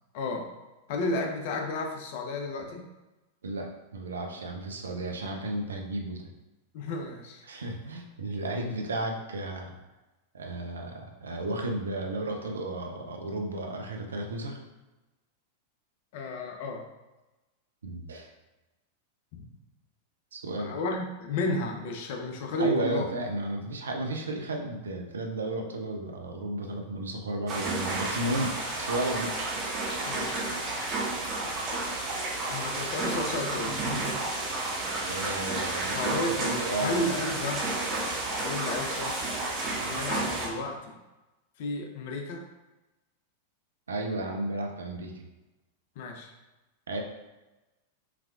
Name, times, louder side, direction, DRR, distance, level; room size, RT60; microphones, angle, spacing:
voice 1, 0.1-0.5 0.9-2.9 6.7-7.4 16.1-16.8 20.6-23.1 30.1-30.8 32.4-33.8 35.5-35.6 35.9-37.6 38.4-39.3 39.7-41.0 41.6-42.4 46.0-46.3, left 2 dB, 55° left, 3 dB, 0.7 m, -32 dB
voice 2, 3.4-6.2 7.4-9.7 10.3-14.6 17.8-18.3 20.3-20.7 22.6-29.3 35.0-36.9 43.9-45.1 46.9-47.0, right 1 dB, 75° right, 2 dB, 0.7 m, -33 dB
sound 1, 27.5-40.5, right 2 dB, 35° right, 1.4 m, -31 dB
5.8 x 3.4 x 2.4 m, 1.1 s
figure-of-eight pair, 95°, 0 cm